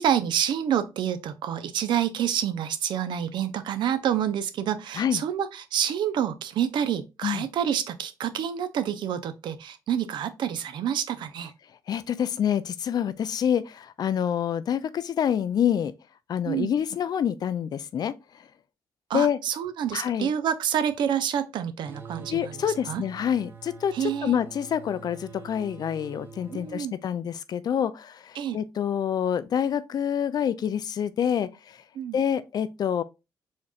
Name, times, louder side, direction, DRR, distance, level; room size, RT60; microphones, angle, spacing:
voice 1, 0.0-11.5 16.4-16.7 19.1-22.6 22.9-23.0 23.9-24.4 26.5-26.9 28.4-28.6 32.0-32.2, right 9 dB, 70° right, 0.5 m, -28 dB
voice 2, 11.9-15.9 16.3-18.1 19.1-19.4 19.9-20.3 22.3-31.5 32.1-33.0, left 9 dB, 55° left, 0.4 m, -27 dB
sound 1, 21.8-26.8, right 6 dB, 25° right, 0.8 m, -45 dB
4.2 x 3.0 x 2.3 m
supercardioid pair, 70°, 8 cm